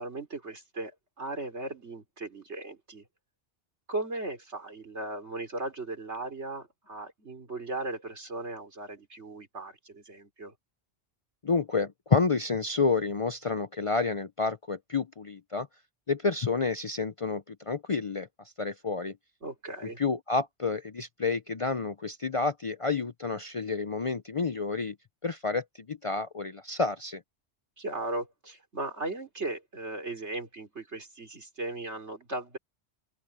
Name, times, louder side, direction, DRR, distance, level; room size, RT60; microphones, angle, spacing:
voice 1, 0.0-3.1 3.9-10.5 19.4-20.0 27.8-32.6, right 2 dB, 80° right, 4.2 m, -37 dB
voice 2, 11.4-15.7 16.1-18.3 18.6-19.1 20.0-24.9 25.2-27.2, left 4 dB, 40° left, 0.5 m, -29 dB
open air
omnidirectional pair, 1.2 m